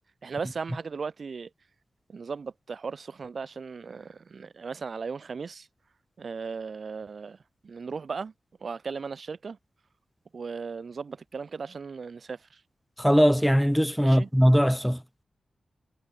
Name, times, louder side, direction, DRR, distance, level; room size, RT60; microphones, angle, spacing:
voice 1, 0.2-1.5 2.1-5.7 6.2-7.4 7.6-8.3 8.6-9.6 10.3-12.6 14.0-14.3, right 5 dB, 60° right, 2.1 m, -37 dB
voice 2, 13.0-15.0, equal, ahead, 1.6 m, -20 dB
wide cardioid pair, 85°, 0 cm